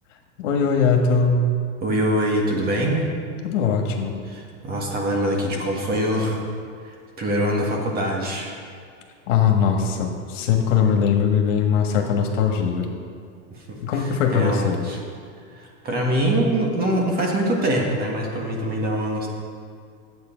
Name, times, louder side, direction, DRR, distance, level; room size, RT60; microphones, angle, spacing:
voice 1, 0.4-1.4 3.4-4.1 9.3-12.9 13.8-14.8, left 6 dB, 80° left, 2 dB, 1.7 m, -20 dB
voice 2, 1.8-3.1 4.2-6.4 6.8-8.5 13.5-15.0 15.6-19.3, right 1 dB, 25° right, 0 dB, 1.6 m, -24 dB
10.5 x 8.2 x 5.1 m, 2.3 s
supercardioid pair, 150°, 37 cm